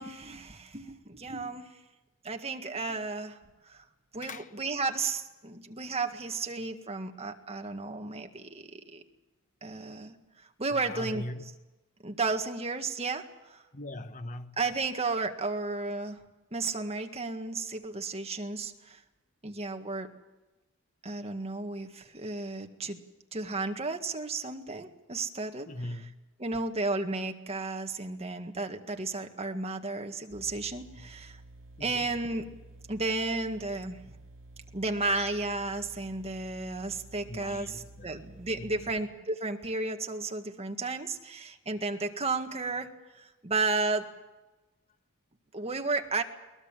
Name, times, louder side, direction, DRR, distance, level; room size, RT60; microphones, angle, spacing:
voice 1, 0.0-1.6 2.2-3.4 3.7-3.8 4.1-9.0 9.6-10.1 10.6-11.2 12.0-13.6 14.6-16.2 16.5-19.0 19.4-20.1 21.0-23.0 23.3-25.7 26.4-31.4 31.8-32.5 32.9-34.0 34.7-42.9 43.4-44.1 45.5-46.2, right 3 dB, 30° right, 1.8 m, -33 dB
voice 2, 4.2-4.5 10.7-11.4 13.7-14.6 25.7-26.1 31.0-31.1 31.8-32.1 37.3-38.1 38.5-38.9, left 1 dB, 35° left, 1.2 m, -41 dB
sound 1, 30.3-39.0, right 2 dB, 60° right, 1.1 m, -51 dB
22.5 x 19.5 x 7.6 m
head